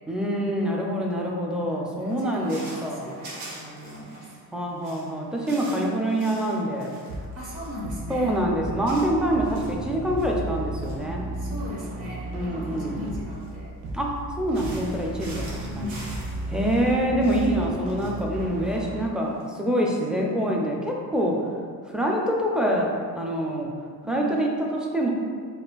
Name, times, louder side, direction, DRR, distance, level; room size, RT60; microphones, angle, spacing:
voice 1, 0.1-3.1 4.5-6.9 8.1-11.3 12.3-13.0 13.9-14.1 14.4-16.0 16.5-21.3 21.9-23.7 24.1-25.1, right 1 dB, ahead, -2 dB, 0.4 m, -25 dB
voice 2, 1.6-4.3 7.3-8.4 11.4-13.7 15.6-16.1 24.0-24.5, left 1 dB, 40° right, -6 dB, 1.3 m, -38 dB
sound 1, 2.1-4.4 4.7-11.0 11.3-14.2 14.5-19.5, right 1 dB, 90° right, 0.8 m, -45 dB
sound 2, 7.1-19.1, right 1 dB, 60° right, 0.5 m, -35 dB
4.2 x 2.4 x 2.3 m, 2.1 s
cardioid pair, 85°, 38 cm